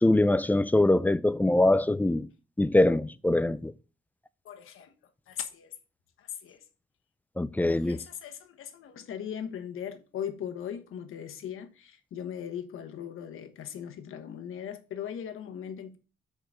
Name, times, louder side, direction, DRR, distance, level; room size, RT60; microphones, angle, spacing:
voice 1, 0.0-2.3 2.6-3.7 7.4-8.0, left 1 dB, 10° left, 0.5 m, -23 dB
voice 2, 4.4-4.9 5.3-5.7 6.2-6.6 7.7-16.0, left 9 dB, 85° left, 1.2 m, -39 dB
6.7 x 5.0 x 5.9 m
cardioid pair, 100°, 21 cm